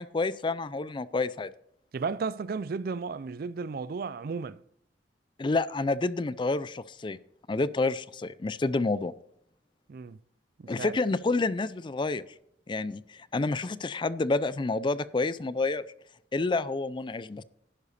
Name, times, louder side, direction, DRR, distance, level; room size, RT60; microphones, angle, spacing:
voice 1, 0.0-1.5 5.4-7.2 7.5-9.1 10.7-12.2 12.7-15.9 16.3-17.4, left 3 dB, 25° left, 0.4 m, -29 dB
voice 2, 1.9-4.6 9.9-10.2 10.6-11.0, right 4 dB, 55° right, 0.4 m, -34 dB
11.5 x 9.9 x 4.2 m
head